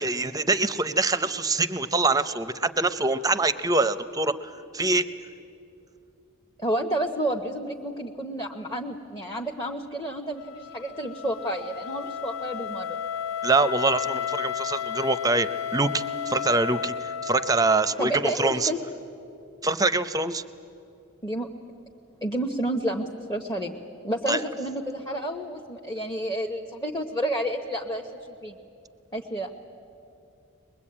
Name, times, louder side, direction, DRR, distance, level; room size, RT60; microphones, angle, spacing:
voice 1, 0.0-4.3 4.7-5.0 13.4-18.7 19.6-20.4 24.3-24.4, right 3 dB, 15° right, 13 dB, 0.6 m, -24 dB
voice 2, 6.6-13.0 18.0-18.8 21.2-21.5 22.2-23.8 24.0-28.1 28.4-28.6 29.1-29.5, right 1 dB, 15° left, 1 dB, 0.9 m, -30 dB
Wind instrument woodwind instrument, 10.4-18.4, left 8 dB, 75° left, 0.6 m, -33 dB
22.5 x 21.0 x 8.7 m, 2.6 s
head